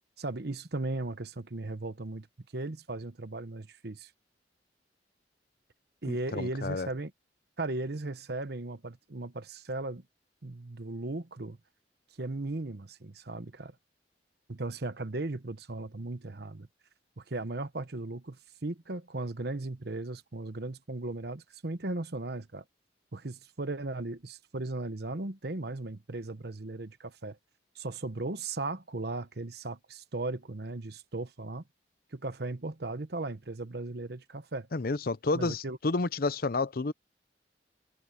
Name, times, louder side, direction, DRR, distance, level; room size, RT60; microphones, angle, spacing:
voice 1, 0.2-2.3 2.5-4.1 6.0-7.1 7.6-10.0 10.4-11.6 12.2-13.7 14.5-16.7 17.2-22.6 23.1-27.4 27.7-31.6 32.1-34.7 35.3-35.8, right 2 dB, 60° right, 1.1 m, -37 dB
voice 2, 6.1-6.9 34.7-36.9, left 3 dB, 55° left, 0.7 m, -30 dB
head